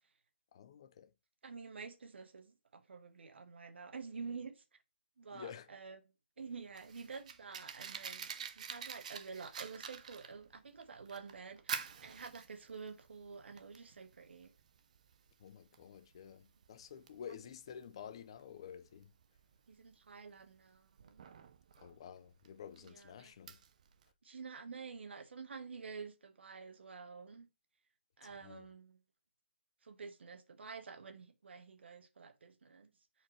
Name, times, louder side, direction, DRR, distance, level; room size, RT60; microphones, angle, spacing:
voice 1, 0.5-1.1 5.3-5.7 15.4-19.1 21.8-23.6 28.2-28.7, left 8 dB, 25° left, 0.4 m, -51 dB
voice 2, 1.4-4.6 5.2-6.0 6.4-14.5 19.7-21.2 22.8-23.3 24.2-27.5 28.2-29.0 29.8-32.9, right 5 dB, 65° right, 1.1 m, -49 dB
Fire, 6.4-24.1, right 7 dB, 35° right, 0.5 m, -49 dB
7.3 x 4.4 x 3.1 m
hypercardioid pair, 170°, 6 cm